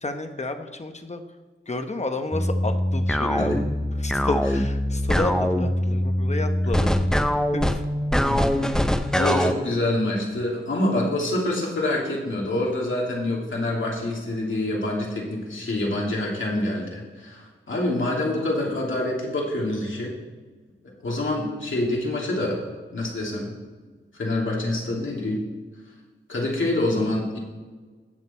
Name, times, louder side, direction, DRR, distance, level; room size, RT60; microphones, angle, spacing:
voice 1, 0.0-1.2 1.7-3.5 4.0-7.0 7.3-7.8, left 2 dB, 30° left, 7 dB, 0.9 m, -31 dB
sound 1, 2.3-9.5, equal, 5° left, 0.6 m, -23 dB
voice 2, 9.1-20.1 21.0-22.6 22.9-23.5 24.1-25.4 26.3-27.4, left 1 dB, 65° left, -3 dB, 2.7 m, -26 dB
17.0 x 6.5 x 4.3 m, 1.4 s
wide cardioid pair, 90°, 21 cm